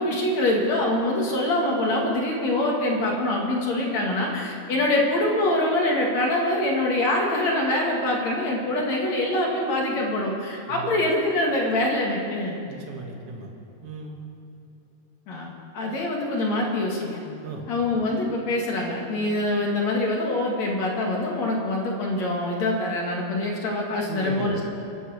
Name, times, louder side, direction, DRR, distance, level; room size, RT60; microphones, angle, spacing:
voice 1, 0.0-12.6 15.3-17.2 17.7-24.6, left 1 dB, 50° left, -1 dB, 2.8 m, -24 dB
voice 2, 12.7-13.5 13.8-14.2 17.4-17.6 24.1-24.6, right 4 dB, 50° right, 1 dB, 2.0 m, -35 dB
23.5 x 8.5 x 6.5 m, 2.9 s
omnidirectional pair, 4.7 m